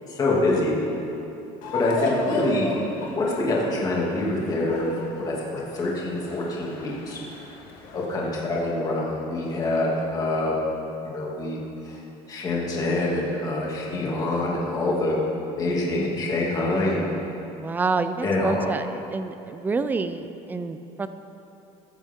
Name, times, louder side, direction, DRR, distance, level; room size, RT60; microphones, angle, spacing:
voice 1, 0.1-0.7 1.7-2.7 3.1-4.9 5.3-7.2 7.9-10.5 11.0-12.0 12.3-15.2 15.6-17.1 18.2-18.7, left 2 dB, 25° left, -4 dB, 2.4 m, -25 dB
sound 1, 1.6-8.0, left 3 dB, 70° left, 2.3 m, -33 dB
voice 2, 17.5-21.1, right 4 dB, 15° right, 10 dB, 0.4 m, -28 dB
22.0 x 10.0 x 3.7 m, 2.9 s
cardioid pair, 170°, 14 cm